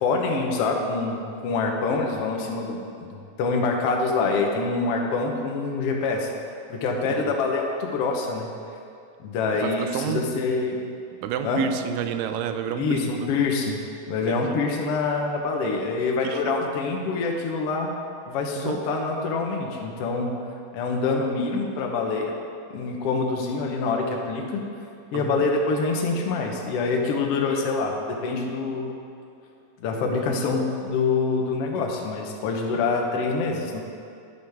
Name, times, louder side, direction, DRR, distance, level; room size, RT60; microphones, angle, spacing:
voice 1, 0.0-6.3 6.7-8.5 9.2-10.8 11.4-11.6 12.8-13.8 14.1-17.9 18.3-20.3 20.7-22.3 22.7-24.6 25.1-28.9 29.8-33.8, left 4 dB, 65° left, 1 dB, 1.6 m, -25 dB
voice 2, 9.5-10.3 11.2-13.3 14.3-14.6 16.2-16.5 18.6-18.8 25.1-25.4 30.1-30.5 31.7-31.9, right 8 dB, 85° right, 8 dB, 2.2 m, -31 dB
12.0 x 9.6 x 3.5 m, 2.6 s
omnidirectional pair, 3.8 m